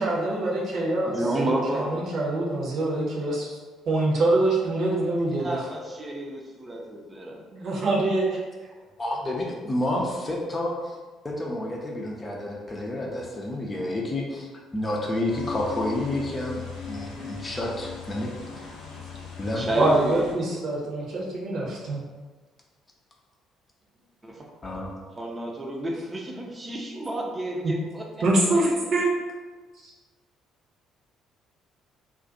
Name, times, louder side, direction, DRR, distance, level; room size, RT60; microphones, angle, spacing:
voice 1, 0.0-1.2 1.7-3.6 3.9-5.6 7.5-8.3 19.7-22.0 27.6-27.7 28.2-29.1, right 2 dB, 50° right, -4 dB, 0.9 m, -24 dB
voice 2, 1.1-2.0 5.4-7.4 19.5-20.3 24.2-24.5 24.7-24.8 25.2-28.0, right 1 dB, 25° right, 0 dB, 0.7 m, -30 dB
voice 3, 9.0-11.0 11.2-18.7 19.4-19.7 24.6-24.9, left 1 dB, 25° left, -2 dB, 0.6 m, -30 dB
sound 1, 15.3-20.3, left 6 dB, 70° left, 0.6 m, -39 dB
2.5 x 2.4 x 3.9 m, 1.3 s
figure-of-eight pair, 50°, 0 cm